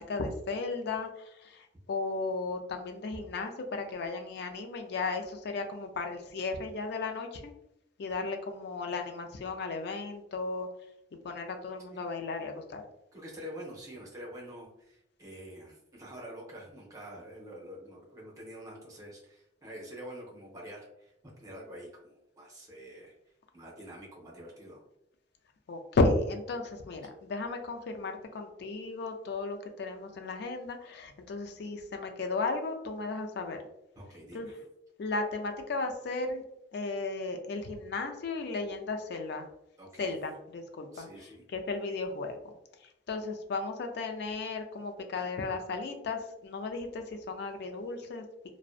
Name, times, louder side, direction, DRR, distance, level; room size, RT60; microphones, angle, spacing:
voice 1, 0.0-7.5 8.0-10.7 11.2-12.8 25.7-33.6 34.3-34.5 35.0-36.4 36.7-39.5 40.0-42.4 43.1-48.2, left 3 dB, 60° left, 5 dB, 0.4 m, -34 dB
voice 2, 13.1-21.1 21.4-23.1 23.5-24.8 34.0-34.5 39.8-40.2 40.9-41.4, equal, 20° right, -3 dB, 0.7 m, -46 dB
2.6 x 2.0 x 2.4 m, 0.82 s
head